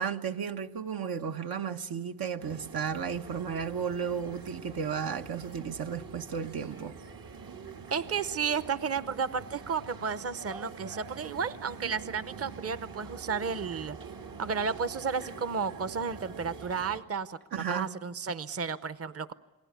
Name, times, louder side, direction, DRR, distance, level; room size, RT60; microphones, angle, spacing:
voice 1, 0.0-7.0 17.5-17.9, right 7 dB, 85° right, 1.2 m, -34 dB
sound 1, 2.4-17.0, right 5 dB, 70° right, 1.7 m, -45 dB
voice 2, 7.9-14.0 14.4-19.3, right 6 dB, 40° right, 0.8 m, -33 dB
28.5 x 20.5 x 8.2 m
wide cardioid pair, 100°, 35 cm